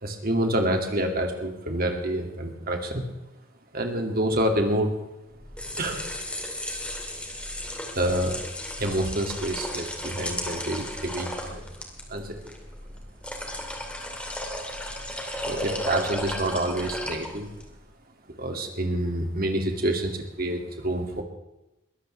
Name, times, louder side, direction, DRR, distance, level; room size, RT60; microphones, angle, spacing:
voice 1, 0.0-3.0 3.7-5.0 5.8-6.0 8.0-8.4 8.8-11.6 12.1-12.4 15.4-17.5 18.4-21.2, right 1 dB, 45° right, 3 dB, 2.4 m, -27 dB
sound 1, 5.4-17.7, left 1 dB, 5° left, 2.5 m, -35 dB
22.0 x 15.0 x 3.4 m, 0.97 s
head